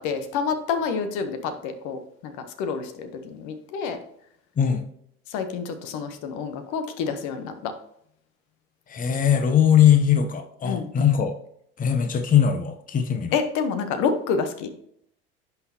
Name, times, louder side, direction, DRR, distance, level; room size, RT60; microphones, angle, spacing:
voice 1, 0.0-4.0 5.3-7.7 10.6-10.9 13.3-14.7, left 5 dB, 65° left, 8 dB, 1.0 m, -28 dB
voice 2, 8.9-11.3 11.8-13.3, left 9 dB, 25° left, 8 dB, 0.8 m, -20 dB
11.0 x 4.2 x 2.8 m, 0.70 s
hypercardioid pair, 80°, 31 cm